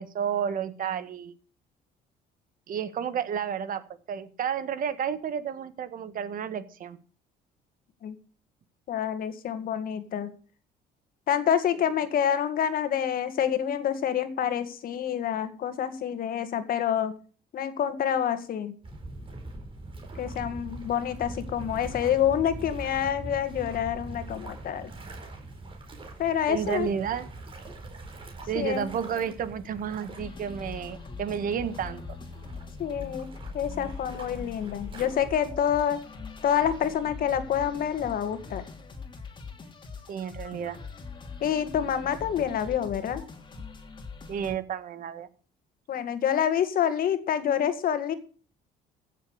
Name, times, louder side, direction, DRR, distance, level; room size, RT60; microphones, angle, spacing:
voice 1, 0.0-1.3 2.7-7.0 26.5-27.3 28.5-32.2 40.1-40.8 44.3-45.3, right 8 dB, 55° right, 12 dB, 1.6 m, -31 dB
voice 2, 8.9-10.3 11.3-17.1 17.5-18.7 20.2-24.9 26.2-26.9 28.6-28.9 32.8-33.3 33.5-36.0 36.4-38.6 41.4-43.2 45.9-48.1, left 9 dB, 60° left, 10 dB, 2.0 m, -27 dB
sound 1, 18.8-35.5, right 2 dB, 30° right, 4.6 m, -43 dB
sound 2, 30.2-44.6, left 4 dB, 30° left, 2.8 m, -42 dB
15.5 x 7.6 x 6.5 m, 0.40 s
cardioid pair, 110°, 17 cm